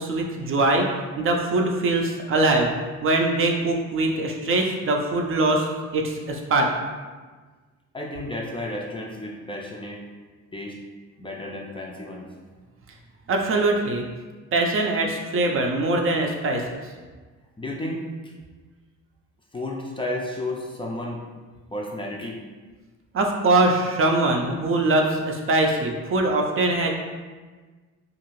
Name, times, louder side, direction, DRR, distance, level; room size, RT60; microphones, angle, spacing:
voice 1, 0.0-2.7 3.0-5.7 5.9-6.7 13.3-14.0 14.5-16.6 23.1-26.9, right 2 dB, 45° right, 1 dB, 0.5 m, -22 dB
voice 2, 7.9-10.0 10.5-10.8 11.2-12.3 17.6-18.3 19.5-21.2 21.7-22.4, left 1 dB, 20° left, -2 dB, 0.4 m, -32 dB
2.7 x 2.5 x 3.0 m, 1.4 s
cardioid pair, 90°, 30 cm